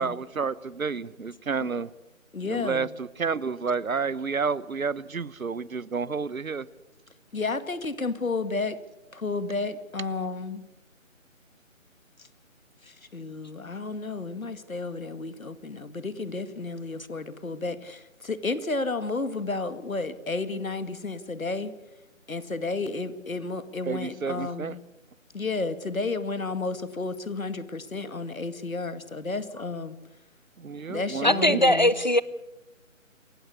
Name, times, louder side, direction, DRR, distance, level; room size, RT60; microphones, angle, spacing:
voice 1, 0.0-1.9 2.4-6.7 23.9-24.7 30.6-31.7, right 5 dB, 85° right, 20 dB, 1.1 m, -30 dB
voice 2, 2.3-2.9 7.3-8.8 9.1-10.6 12.8-21.7 22.3-24.8 25.3-30.0 30.9-31.9, left 3 dB, 80° left, 12 dB, 2.2 m, -32 dB
voice 3, 31.2-32.2, left 1 dB, 35° left, 17 dB, 0.7 m, -20 dB
27.5 x 15.5 x 8.4 m, 0.96 s
figure-of-eight pair, 175°, 40 cm